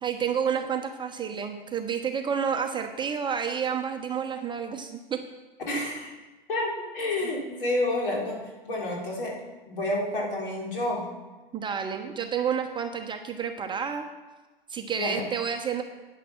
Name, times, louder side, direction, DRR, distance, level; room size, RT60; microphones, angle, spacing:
voice 1, 0.0-5.2 5.7-5.8 11.5-14.1 14.7-15.8, right 7 dB, 15° right, 5 dB, 0.8 m, -30 dB
voice 2, 5.7-6.1 6.5-8.4 8.7-9.4 9.7-11.0 15.0-15.2, left 1 dB, 65° left, -2 dB, 3.7 m, -29 dB
10.0 x 9.1 x 5.9 m, 1.2 s
figure-of-eight pair, 100°, 29 cm